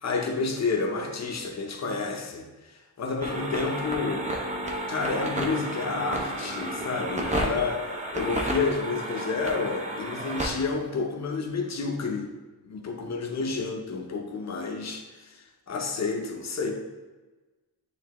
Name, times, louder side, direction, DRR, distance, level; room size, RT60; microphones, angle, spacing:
voice 1, 0.0-4.3 4.9-7.8 8.1-12.3 12.7-16.7, left 4 dB, 45° left, 2 dB, 0.8 m, -30 dB
sound 1, 3.2-10.5, right 1 dB, 20° right, 0.7 m, -32 dB
9.3 x 3.3 x 3.0 m, 1.2 s
wide cardioid pair, 170°, 39 cm